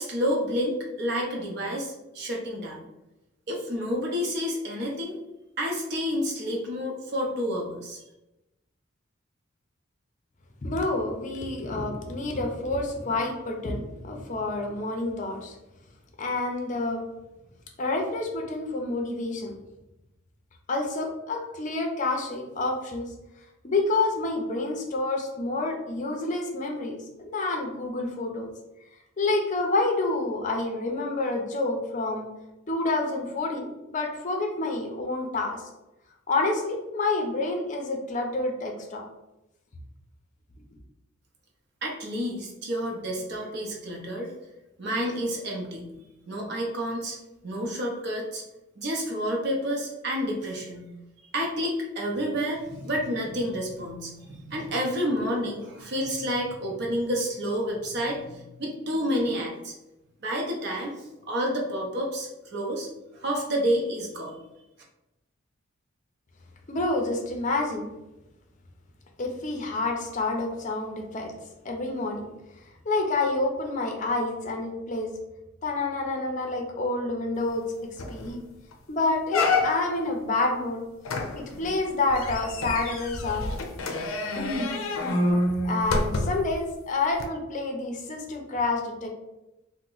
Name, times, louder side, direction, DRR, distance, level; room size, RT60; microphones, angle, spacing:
voice 1, 0.0-2.8 3.5-5.1 5.6-8.0 41.8-44.3 44.8-47.2 47.4-48.4 48.8-50.9 51.3-59.7 60.2-64.4, equal, 55° right, -1 dB, 0.7 m, -29 dB
voice 2, 10.6-15.6 16.2-17.0 17.8-19.5 20.7-23.1 23.6-28.5 29.2-32.3 32.7-35.6 36.3-39.1 66.7-67.8 69.2-71.3 71.6-72.3 72.9-75.1 75.6-77.6 78.1-78.4 78.9-80.8 81.3-83.5 84.2-84.8 85.6-89.1, left 2 dB, 35° left, 2 dB, 0.5 m, -28 dB
sound 1, 77.6-77.7 78.0-78.3 78.7-78.8 79.3-80.0 81.1-86.5 87.2-87.3, left 2 dB, 90° left, 0.5 m, -28 dB
2.9 x 2.1 x 3.8 m, 0.95 s
head